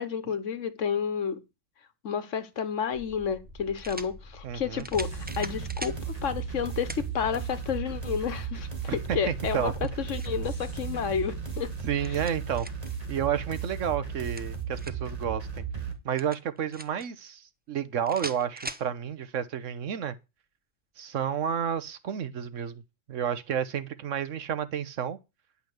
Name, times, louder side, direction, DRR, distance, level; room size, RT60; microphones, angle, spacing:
voice 1, 0.0-1.4 2.0-11.7 12.0-12.2, left 7 dB, 75° left, 1.4 m, -31 dB
sound 1, 2.5-2.6 3.8-4.1 4.8-6.0 6.9-7.1 7.6-7.7 9.6-10.4 11.7-12.9 14.1-15.1 16.2-17.1 18.1-18.9, right 1 dB, 10° right, 0.5 m, -41 dB
sound 2, 2.9-11.9, left 1 dB, 50° right, 2.5 m, -48 dB
voice 2, 4.4-4.9 8.9-9.7 11.8-12.7 13.1-15.6 16.0-20.2 21.0-22.8 23.1-25.2, right 8 dB, 75° right, 1.3 m, -31 dB
sound 3, 4.9-15.9, right 6 dB, 30° right, 2.3 m, -35 dB
10.5 x 5.7 x 7.9 m
omnidirectional pair, 1.3 m